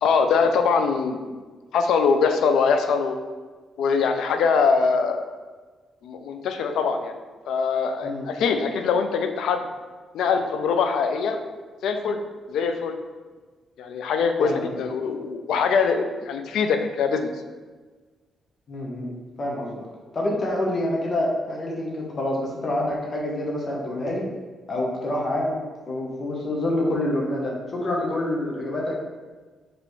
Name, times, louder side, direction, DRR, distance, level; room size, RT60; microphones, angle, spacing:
voice 1, 0.0-1.4 1.7-3.2 3.8-5.3 6.0-7.1 7.5-9.6 10.1-11.4 11.8-12.2 12.5-12.9 13.8-17.3, left 5 dB, 80° left, 6 dB, 0.4 m, -23 dB
voice 2, 14.4-14.8 18.7-19.1 19.4-19.8 20.1-24.2 24.7-25.5 25.9-29.0, left 1 dB, 40° left, -2 dB, 0.9 m, -27 dB
5.2 x 3.0 x 3.1 m, 1.4 s
cardioid pair, 110°, 0 cm